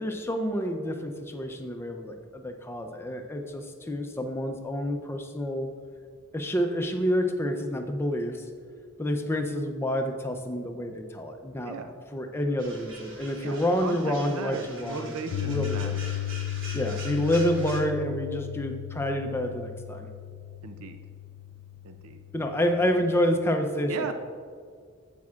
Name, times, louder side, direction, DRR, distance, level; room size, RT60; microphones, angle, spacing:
voice 1, 0.0-5.7 6.3-8.4 9.0-11.7 12.1-15.1 15.5-15.9 16.7-20.1 22.3-24.0, equal, 10° left, 4 dB, 0.5 m, -28 dB
sound 1, 12.6-17.8, right 2 dB, 55° right, 1.3 m, -44 dB
voice 2, 13.4-16.1 20.6-21.0 21.8-22.2 23.9-24.1, right 4 dB, 75° right, 7 dB, 0.5 m, -37 dB
Piano, 15.3-23.4, left 12 dB, 90° left, 0.4 m, -36 dB
10.5 x 8.4 x 2.4 m, 2.1 s
head